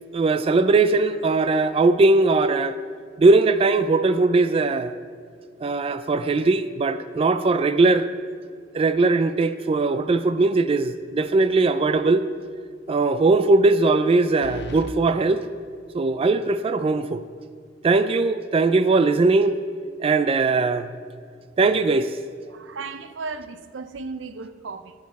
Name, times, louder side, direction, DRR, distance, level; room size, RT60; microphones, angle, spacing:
voice 1, 0.1-2.8 3.2-4.9 5.6-8.1 8.7-12.2 12.9-15.5 15.9-17.2 17.8-19.5 20.0-20.9 21.6-22.2, right 3 dB, 30° right, 12 dB, 0.3 m, -20 dB
sound 1, 11.3-11.8 12.1-12.2 14.4-15.0, left 2 dB, 65° left, 0.5 m, -38 dB
voice 2, 22.5-24.9, right 4 dB, 85° right, 11 dB, 0.6 m, -35 dB
18.5 x 6.5 x 4.1 m, 2.1 s
head